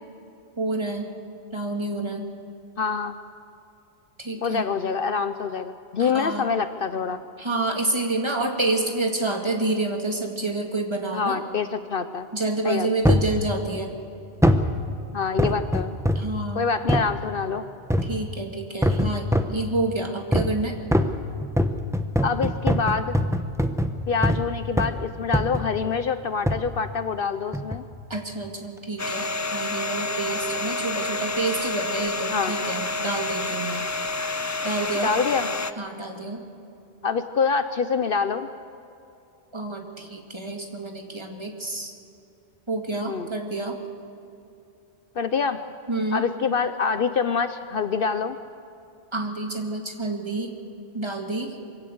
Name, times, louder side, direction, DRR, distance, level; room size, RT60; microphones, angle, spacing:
voice 1, 0.6-1.1 1.5-2.3 4.2-4.7 6.0-6.5 7.4-11.4 12.3-13.9 16.2-16.7 18.0-20.8 28.1-33.8 34.6-35.2 35.8-36.4 39.5-41.9 42.7-43.8 45.9-46.2 49.1-50.5 50.9-51.6, right 2 dB, 25° right, 3 dB, 2.1 m, -28 dB
voice 2, 2.8-3.1 4.4-7.2 11.1-12.3 12.6-12.9 15.1-16.0 16.5-17.6 22.2-23.2 24.1-27.8 32.3-32.5 34.9-35.5 37.0-38.5 43.1-43.3 45.2-45.6 46.1-48.4, left 5 dB, 60° left, 11 dB, 0.8 m, -25 dB
sound 1, 13.0-13.4 14.4-14.7 15.4-16.3 16.9-17.1 17.9-18.2 18.8-19.6 20.3-20.6 20.9-24.5 24.8-25.0 25.3-25.7 26.5-26.7 27.5-27.8 28.4-28.5, equal, 5° right, 0.8 m, -23 dB
Domestic sounds home sounds, 29.0-35.7, left 3 dB, 25° left, 0.4 m, -29 dB
23.5 x 16.5 x 7.9 m, 2.7 s
omnidirectional pair, 1.1 m